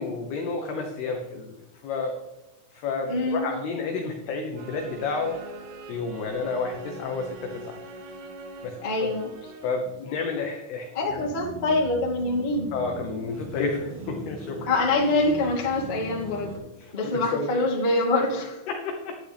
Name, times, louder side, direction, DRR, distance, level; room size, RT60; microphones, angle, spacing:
voice 1, 0.0-1.5 1.8-2.2 2.7-5.4 5.9-7.8 8.6-8.8 9.0-9.1 9.6-11.2 12.7-14.7 16.8-17.5 18.7-19.2, left 4 dB, 85° left, 3 dB, 2.3 m, -30 dB
voice 2, 3.1-3.5 8.8-9.3 10.9-12.7 14.7-16.5 16.9-18.6, left 2 dB, 65° left, -5 dB, 0.5 m, -25 dB
sound 1, 4.6-10.0, right 2 dB, 80° right, 2.3 m, -43 dB
sound 2, 11.1-16.6, right 1 dB, 55° right, 3.5 m, -40 dB
12.0 x 10.5 x 3.5 m, 0.96 s
omnidirectional pair, 6.0 m